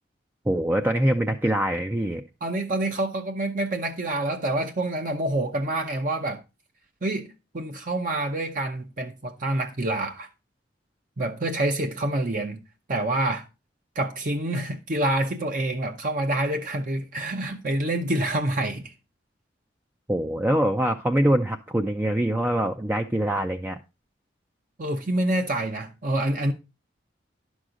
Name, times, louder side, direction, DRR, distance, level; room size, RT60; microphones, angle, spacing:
voice 1, 0.5-2.2 20.1-23.8, right 1 dB, 10° right, 0.5 m, -24 dB
voice 2, 2.4-6.4 7.0-10.3 11.2-12.6 12.9-13.5 14.0-18.9 24.8-26.5, right 1 dB, 45° right, 0.8 m, -27 dB
11.0 x 6.3 x 3.8 m
head